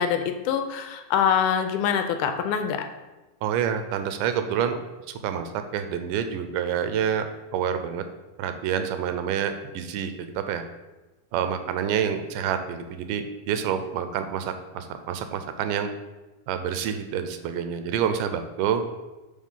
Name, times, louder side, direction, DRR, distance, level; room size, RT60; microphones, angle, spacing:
voice 1, 0.0-2.8, left 8 dB, 80° left, 7 dB, 2.0 m, -24 dB
voice 2, 3.4-4.8 5.2-8.0 8.4-10.6 11.3-15.9 16.5-18.8, right 8 dB, 90° right, 8 dB, 2.2 m, -28 dB
6.5 x 3.4 x 5.4 m, 1.1 s
omnidirectional pair, 3.7 m